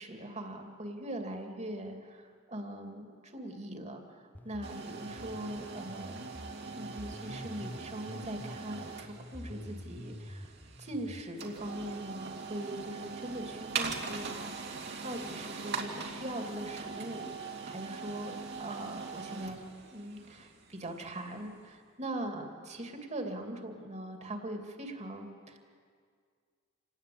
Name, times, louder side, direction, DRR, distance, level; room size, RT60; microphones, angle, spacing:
voice 1, 0.0-6.3 6.7-10.5 10.8-19.6 19.9-25.6, right 1 dB, 35° right, 4 dB, 2.7 m, -41 dB
sound 1, 4.3-11.2, left 1 dB, 10° left, 0.5 m, -47 dB
sound 2, 4.6-21.5, right 5 dB, 55° right, 2.5 m, -42 dB
27.5 x 19.0 x 8.7 m, 2.1 s
head